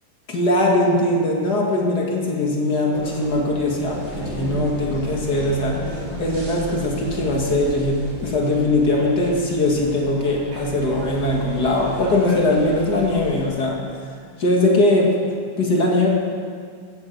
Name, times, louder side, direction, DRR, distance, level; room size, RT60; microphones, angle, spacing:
voice 1, 0.3-5.8 6.2-13.8 14.4-15.1 15.6-16.1, left 2 dB, 40° left, -1 dB, 1.7 m, -20 dB
sound 1, 2.9-13.4, right 1 dB, 50° right, 4.7 m, -33 dB
16.0 x 11.0 x 5.2 m, 2.2 s
omnidirectional pair, 3.9 m